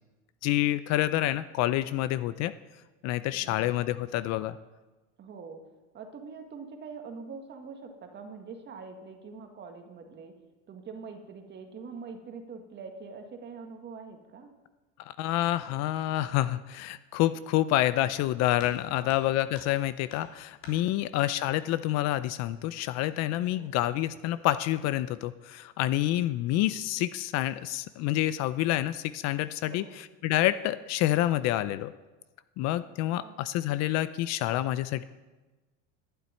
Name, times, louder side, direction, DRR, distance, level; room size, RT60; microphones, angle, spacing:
voice 1, 0.4-2.5 3.0-4.6 15.1-31.9 32.6-35.0, left 14 dB, 50° left, 15 dB, 0.6 m, -28 dB
voice 2, 3.3-3.7 5.2-5.6 5.9-10.3 10.7-14.5 18.9-19.2 20.9-21.1 23.5-23.7 29.6-30.0 33.2-33.4, right 5 dB, 30° right, 5 dB, 1.9 m, -44 dB
sound 1, 18.6-18.8 19.1-19.8 20.1-20.8 22.0-22.1 22.6-22.7 23.4-23.8 24.1-24.5, left 5 dB, 65° left, 3.6 m, -49 dB
11.5 x 7.5 x 9.7 m, 1.2 s
supercardioid pair, 135°, 34 cm